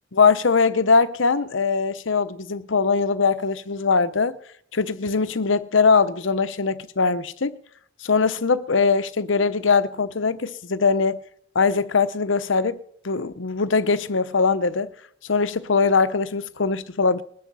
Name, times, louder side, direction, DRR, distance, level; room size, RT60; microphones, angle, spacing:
voice 1, 0.1-4.4 4.7-7.5 8.0-11.2 11.5-14.9 15.3-17.2, left 4 dB, 85° left, 0.9 m, -21 dB
20.5 x 12.0 x 5.5 m
head